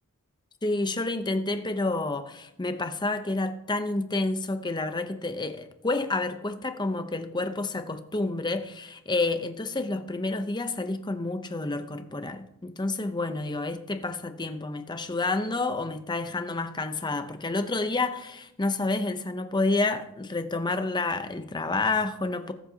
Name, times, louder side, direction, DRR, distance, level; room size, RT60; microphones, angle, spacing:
voice 1, 0.6-22.5, left 2 dB, 20° left, 0.7 m, -29 dB
20.5 x 7.7 x 2.9 m
head